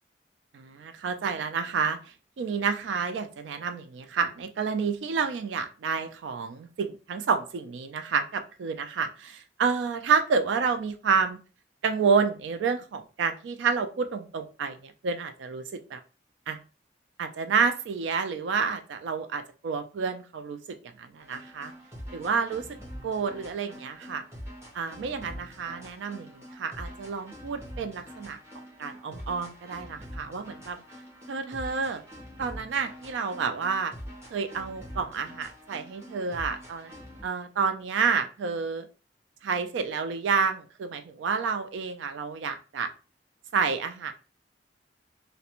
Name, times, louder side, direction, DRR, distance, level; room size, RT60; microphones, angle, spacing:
voice 1, 0.5-11.4 11.8-16.0 16.5-16.6 17.2-20.6 21.0-21.7 22.1-22.7 23.0-24.2 24.7-28.4 28.8-30.8 31.3-32.0 32.4-33.9 34.3-36.9 37.2-38.9 39.4-42.9 43.5-44.1, right 5 dB, 80° right, 8 dB, 0.3 m, -29 dB
sound 1, 21.2-37.3, equal, 15° right, 0.8 m, -45 dB
2.4 x 2.1 x 2.8 m, 0.34 s
head